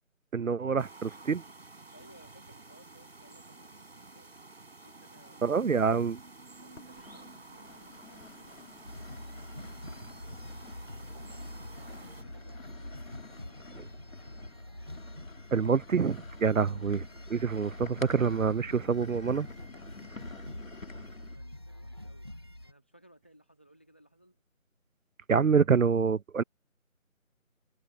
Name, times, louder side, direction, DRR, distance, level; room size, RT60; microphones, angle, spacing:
voice 1, 0.3-1.4 5.4-6.2 15.5-17.0 17.3-19.5 25.3-26.4, right 6 dB, 70° right, 0.7 m, -26 dB
sound 1, 0.8-12.2, right 3 dB, 50° right, 6.1 m, -51 dB
voice 2, 1.9-4.3 4.8-5.8 6.6-8.8 11.6-13.9 16.6-17.0 20.5-22.3 22.6-24.4, right 1 dB, 10° left, 1.6 m, -61 dB
sound 2, 6.2-6.3 6.8-21.4, left 3 dB, 70° left, 2.6 m, -50 dB
sound 3, 8.8-22.7, left 1 dB, 20° right, 1.3 m, -45 dB
figure-of-eight pair, 175°, 41 cm